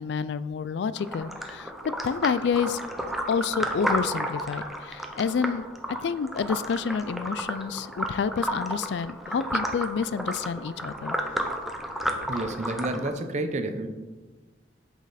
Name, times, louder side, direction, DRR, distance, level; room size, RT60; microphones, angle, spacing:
voice 1, 0.0-2.8 3.3-5.7 6.0-11.2, left 6 dB, 65° left, 15 dB, 0.3 m, -29 dB
sound 1, 1.0-13.1, equal, ahead, 0.6 m, -32 dB
voice 2, 12.3-13.9, right 2 dB, 40° right, 8 dB, 0.7 m, -30 dB
8.3 x 6.2 x 4.1 m, 1.3 s
head